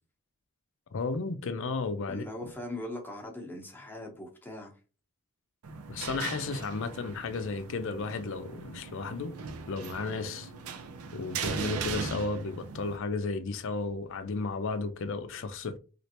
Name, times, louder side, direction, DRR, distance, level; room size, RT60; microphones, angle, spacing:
voice 1, 0.9-2.5 5.9-9.4 9.7-10.5 11.1-15.8, left 4 dB, 60° left, 0.4 m, -34 dB
voice 2, 2.1-4.7, left 1 dB, 10° left, 0.8 m, -40 dB
sound 1, 5.6-13.0, right 5 dB, 85° right, 0.5 m, -39 dB
3.2 x 2.5 x 2.8 m
head